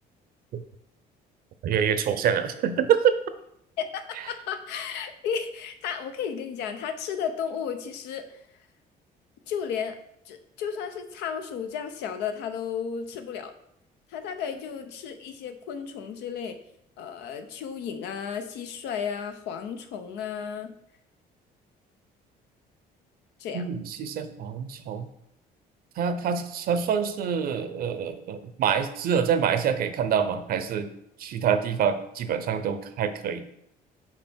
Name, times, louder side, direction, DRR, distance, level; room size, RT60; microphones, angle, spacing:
voice 1, 1.6-3.1 23.5-25.1 26.0-30.9 31.2-33.4, right 7 dB, 60° right, 11 dB, 0.7 m, -26 dB
voice 2, 3.8-8.4 9.5-10.0 10.3-13.5 14.1-16.6 17.0-20.7 23.4-23.6, left 7 dB, 85° left, 8 dB, 0.7 m, -33 dB
6.0 x 4.6 x 4.4 m, 0.75 s
cardioid pair, 110°, 17 cm